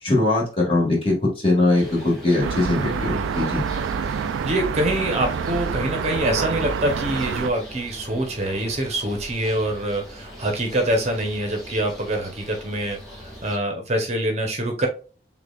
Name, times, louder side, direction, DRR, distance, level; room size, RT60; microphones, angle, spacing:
voice 1, 0.0-3.6, left 2 dB, 30° left, -3 dB, 1.6 m, -21 dB
sound 1, 1.8-13.6, equal, ahead, 1.6 m, -41 dB
sound 2, 2.4-7.5, right 6 dB, 90° right, 0.3 m, -27 dB
voice 2, 4.4-14.9, right 1 dB, 35° right, 3 dB, 0.8 m, -25 dB
6.5 x 2.4 x 2.3 m, 0.35 s
head